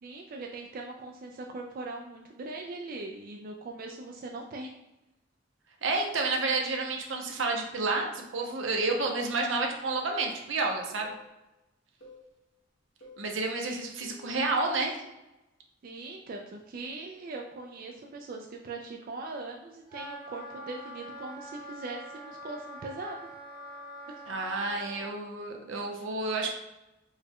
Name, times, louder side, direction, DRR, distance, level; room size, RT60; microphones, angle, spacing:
voice 1, 0.0-4.7 15.8-23.2, right 3 dB, 50° right, 2 dB, 0.3 m, -40 dB
voice 2, 5.8-11.2 13.2-15.0 24.3-26.5, right 3 dB, 80° right, 2 dB, 0.7 m, -30 dB
sound 1, 10.0-10.3 11.0-11.3 12.0-12.3 13.0-13.3 14.0-14.3, left 1 dB, 90° left, 1.3 m, -50 dB
Wind instrument woodwind instrument, 19.9-25.1, right 1 dB, 25° right, 1.0 m, -44 dB
4.4 x 2.2 x 3.5 m, 0.98 s
head